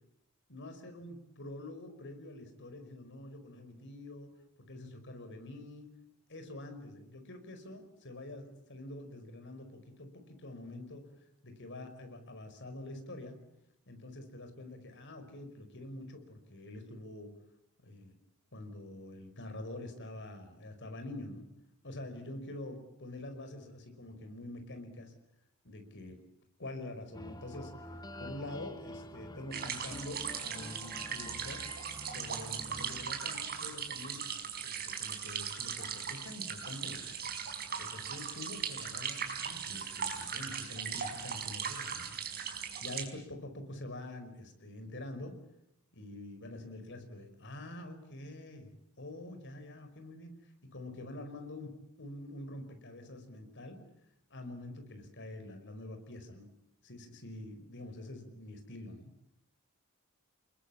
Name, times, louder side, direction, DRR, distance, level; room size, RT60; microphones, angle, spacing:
voice 1, 0.5-4.3 4.6-5.9 6.3-11.1 11.4-13.4 13.9-17.3 17.8-18.2 18.5-21.5 21.8-25.1 25.6-26.2 26.6-27.7 28.2-31.7 32.1-34.3 34.6-37.3 37.8-42.1 42.8-45.4 45.9-48.7 49.0-50.4 50.6-51.7 52.0-53.8 54.3-56.5 56.8-59.1, left 1 dB, 55° left, 7 dB, 5.2 m, -46 dB
sound 1, 27.1-33.7, left 1 dB, 20° left, 2.2 m, -48 dB
sound 2, 29.5-43.1, right 7 dB, 45° right, 4.8 m, -39 dB
28.5 x 21.5 x 8.7 m, 0.81 s
head